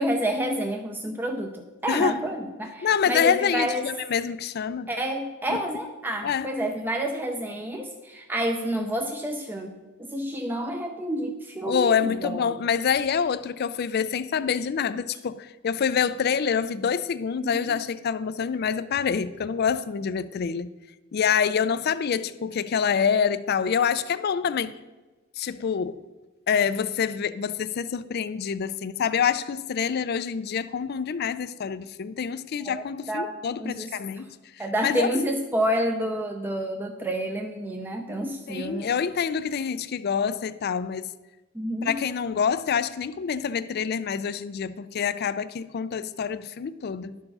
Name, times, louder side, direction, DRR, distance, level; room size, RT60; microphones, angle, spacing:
voice 1, 0.0-3.9 4.9-12.5 17.4-17.8 32.7-33.9 34.6-38.9 41.5-42.0, equal, 10° right, 0.6 m, -29 dB
voice 2, 1.9-2.2 2.8-4.9 5.5-5.6 6.2-6.5 11.7-20.7 21.1-24.7 25.4-26.0 26.5-34.4 34.8-35.1 38.5-41.1 41.8-47.2, left 7 dB, 50° left, 0.4 m, -26 dB
11.5 x 4.6 x 5.4 m
head